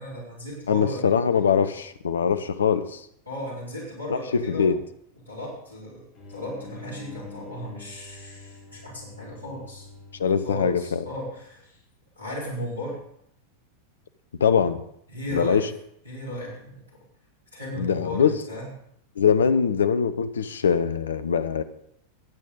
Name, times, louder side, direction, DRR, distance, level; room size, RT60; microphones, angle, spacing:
voice 1, 0.0-1.1 3.3-4.8 5.3-9.9 10.4-11.7 12.1-13.0 15.1-15.7 16.0-17.0 17.5-18.7, left 1 dB, 85° right, -5 dB, 4.4 m, -36 dB
voice 2, 0.7-3.0 4.1-4.8 10.2-11.0 14.4-14.8 15.3-15.7 17.8-18.4 19.2-21.6, left 7 dB, 70° left, 14 dB, 0.9 m, -22 dB
sound 1, 6.2-11.5, left 3 dB, 35° left, 3.6 m, -46 dB
23.0 x 8.6 x 3.8 m, 0.72 s
figure-of-eight pair, 90°, 0 cm